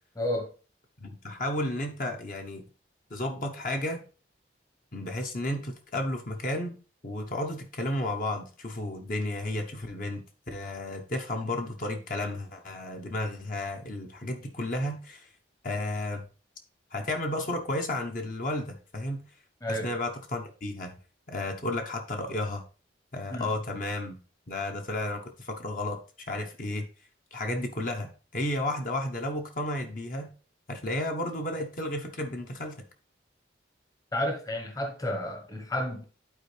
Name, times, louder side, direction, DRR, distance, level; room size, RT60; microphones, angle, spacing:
voice 1, 0.2-0.5 19.6-19.9 23.3-23.5 34.1-36.0, left 1 dB, 20° left, 1.0 m, -31 dB
voice 2, 1.0-2.7 3.1-4.0 4.9-6.8 7.0-15.3 15.6-16.3 16.9-19.2 19.7-21.0 21.3-22.6 23.1-24.2 24.5-26.0 26.3-26.9 27.3-30.3 30.7-32.8, left 1 dB, 45° left, 1.0 m, -32 dB
11.5 x 4.4 x 3.3 m
head